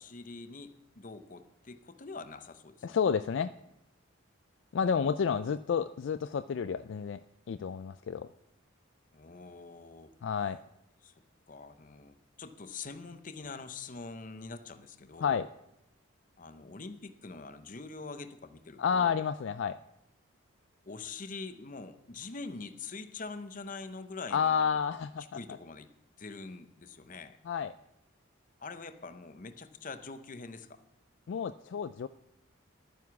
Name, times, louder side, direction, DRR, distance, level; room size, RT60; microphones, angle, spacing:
voice 1, 0.0-3.0 4.8-5.3 9.1-10.1 11.0-15.4 16.4-19.2 20.9-24.8 25.3-25.9 26.2-27.4 28.6-30.8, left 4 dB, 40° left, 10 dB, 0.7 m, -45 dB
voice 2, 2.8-3.5 4.7-7.2 7.5-8.3 10.2-10.6 15.2-15.5 18.8-19.8 24.3-25.2 27.5-27.7 31.3-32.1, left 6 dB, 60° left, 12 dB, 0.3 m, -30 dB
12.0 x 9.5 x 5.9 m, 0.86 s
head